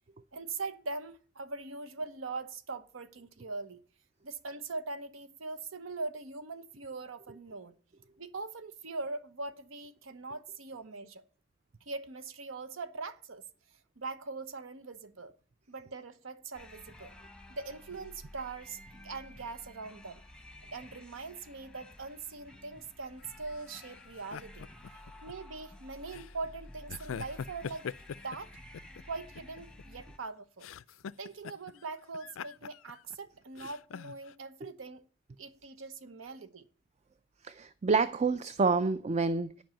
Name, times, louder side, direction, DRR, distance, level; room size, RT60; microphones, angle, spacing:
voice 1, 0.3-3.8 4.2-7.7 8.2-11.2 11.9-13.4 14.0-15.3 15.7-17.1 17.5-20.2 20.7-24.7 25.2-27.9 28.2-28.5 29.1-30.7 31.2-35.0 35.4-36.7, right 3 dB, 80° right, 0.9 m, -41 dB
sound 1, 16.5-30.2, left 1 dB, 5° left, 0.9 m, -52 dB
sound 2, 23.2-25.3 26.1-26.4 26.9-29.0 29.3-30.3 30.6-31.8 32.1-33.2 33.5-34.3, left 7 dB, 90° left, 0.4 m, -43 dB
voice 2, 37.4-39.6, right 4 dB, 35° right, 0.4 m, -28 dB
10.5 x 5.4 x 7.5 m
head